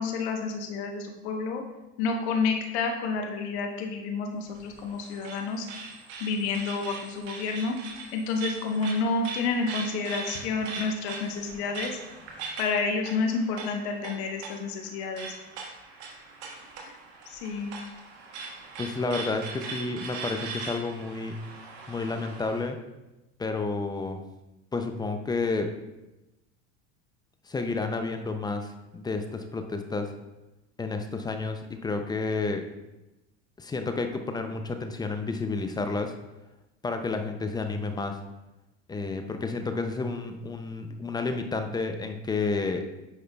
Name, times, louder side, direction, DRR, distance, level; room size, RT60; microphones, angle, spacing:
voice 1, 0.0-1.6 2.0-5.7 6.2-7.8 8.1-12.0 12.6-15.3 17.3-17.7, left 4 dB, 80° left, 3 dB, 1.1 m, -29 dB
sound 1, 4.5-22.6, right 4 dB, 80° right, 1.5 m, -41 dB
voice 2, 18.8-21.3 21.9-22.8 23.4-24.2 24.7-25.7 27.5-30.1 30.8-32.6 33.6-36.1 36.8-38.2 38.9-42.8, left 3 dB, 15° left, 6 dB, 0.4 m, -30 dB
8.5 x 5.6 x 2.3 m, 1.0 s
supercardioid pair, 115°, 33 cm